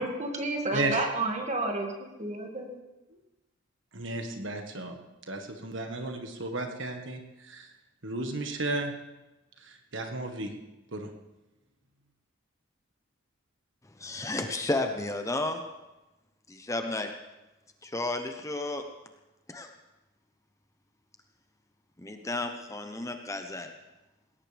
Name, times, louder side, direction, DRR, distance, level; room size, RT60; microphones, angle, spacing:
voice 1, 0.0-1.9 2.2-2.7, right 2 dB, 35° right, 2 dB, 2.2 m, -30 dB
voice 2, 3.9-5.0 5.3-7.7 8.0-8.9 9.6-10.5 10.9-11.1, right 2 dB, 65° right, 4 dB, 1.6 m, -34 dB
voice 3, 13.9-15.7 16.5-17.1 17.8-18.8 19.5-19.7 22.0-23.7, left 2 dB, 15° left, 5 dB, 0.8 m, -32 dB
20.0 x 18.0 x 3.5 m, 1.0 s
head